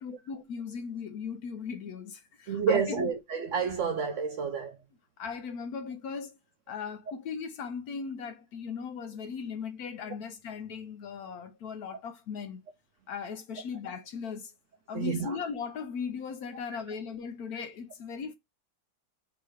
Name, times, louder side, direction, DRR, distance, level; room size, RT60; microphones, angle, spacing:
voice 1, 0.0-3.1 5.2-6.4 6.7-12.6 13.1-14.5 14.9-18.3, left 6 dB, 70° left, 1.0 m, -38 dB
voice 2, 2.5-4.8 14.9-15.4, right 6 dB, 75° right, 0.7 m, -29 dB
3.6 x 2.9 x 4.7 m
omnidirectional pair, 1.9 m